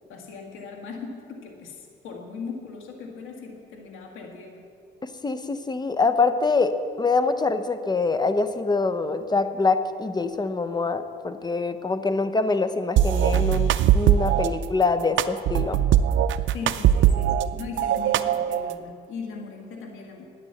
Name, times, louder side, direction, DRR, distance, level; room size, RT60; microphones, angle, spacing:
voice 1, 0.1-4.7 14.4-14.5 16.5-20.3, left 4 dB, 90° left, 2 dB, 1.7 m, -39 dB
voice 2, 5.2-15.8, left 3 dB, 20° left, 10 dB, 0.9 m, -24 dB
sound 1, 13.0-14.5 15.2-17.5 17.8-18.7, right 11 dB, 75° right, 0.5 m, -20 dB
12.0 x 9.4 x 7.9 m, 2.4 s
cardioid pair, 90°, 20 cm